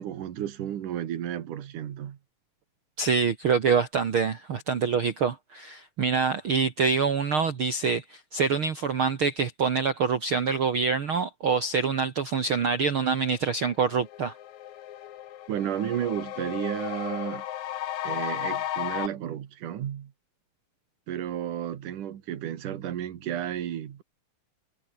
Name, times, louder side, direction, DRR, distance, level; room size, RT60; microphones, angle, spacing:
voice 1, 0.0-2.2 15.5-17.4 18.0-20.1 21.1-24.0, right 10 dB, 70° right, 3.3 m, -32 dB
voice 2, 3.0-14.3, right 5 dB, 45° right, 2.0 m, -25 dB
sound 1, 13.3-13.4 13.7-19.1, left 12 dB, 65° left, 2.4 m, -34 dB
omnidirectional pair, 3.9 m